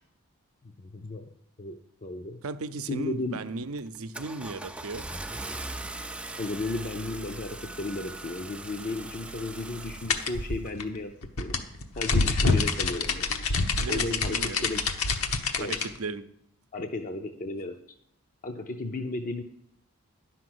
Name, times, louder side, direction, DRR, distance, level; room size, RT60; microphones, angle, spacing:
voice 1, 0.6-1.3 1.6-2.4 2.9-3.4 6.4-11.6 12.0-13.3 13.9-14.9 15.6-15.7 16.7-17.7 18.4-19.4, left 2 dB, 35° left, 4 dB, 0.6 m, -34 dB
voice 2, 2.4-5.1 13.8-14.9 15.6-16.3, right 3 dB, 70° right, 10 dB, 0.7 m, -36 dB
Car / Engine starting, 3.0-3.3 3.8-10.7, right 2 dB, 5° right, 0.4 m, -40 dB
sound 1, 10.1-15.9, left 4 dB, 70° left, 1.0 m, -26 dB
11.0 x 5.9 x 7.8 m, 0.74 s
head